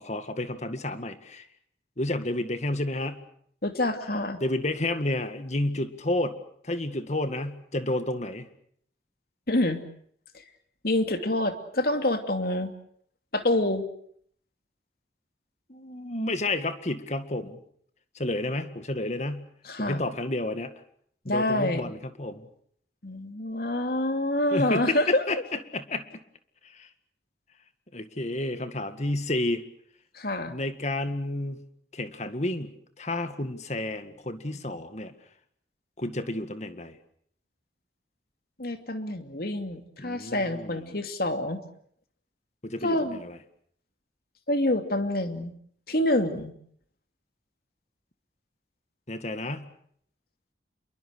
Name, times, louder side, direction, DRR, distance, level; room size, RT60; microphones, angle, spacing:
voice 1, 0.0-1.5 2.0-3.2 4.4-6.4 6.6-8.5 15.7-17.6 18.1-19.5 19.8-20.7 21.3-22.5 24.5-26.1 26.6-26.9 27.9-29.7 30.5-31.6 31.9-35.1 36.0-37.0 40.0-40.9 42.6-43.4 49.1-49.7, left 1 dB, 40° left, 10 dB, 2.0 m, -31 dB
voice 2, 3.6-4.4 9.5-9.8 10.3-10.4 10.8-12.7 13.3-13.9 19.6-20.0 21.3-21.9 23.0-25.3 30.1-30.5 38.6-41.6 42.8-43.2 44.5-45.5 45.9-46.5, left 1 dB, 55° left, 7 dB, 2.7 m, -27 dB
28.0 x 23.0 x 6.6 m, 0.63 s
head